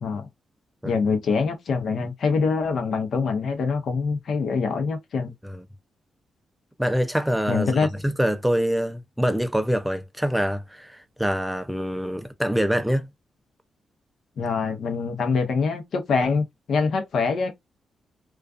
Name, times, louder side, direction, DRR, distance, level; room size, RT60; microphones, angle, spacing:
voice 1, 0.8-5.3 7.5-7.9 14.4-17.5, left 5 dB, 70° left, 0.7 m, -24 dB
voice 2, 6.8-13.1, equal, 5° right, 0.4 m, -25 dB
2.3 x 2.3 x 2.3 m
cardioid pair, 90°, 0 cm